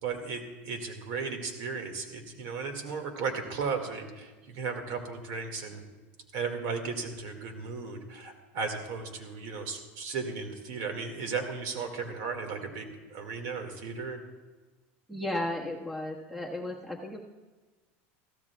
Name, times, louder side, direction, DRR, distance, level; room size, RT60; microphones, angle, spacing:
voice 1, 0.0-5.8 6.3-14.2, right 5 dB, 65° right, 5 dB, 2.1 m, -35 dB
voice 2, 15.1-17.2, left 1 dB, 5° right, -1 dB, 1.6 m, -34 dB
22.0 x 15.0 x 2.4 m, 1.3 s
supercardioid pair, 140°, 7 cm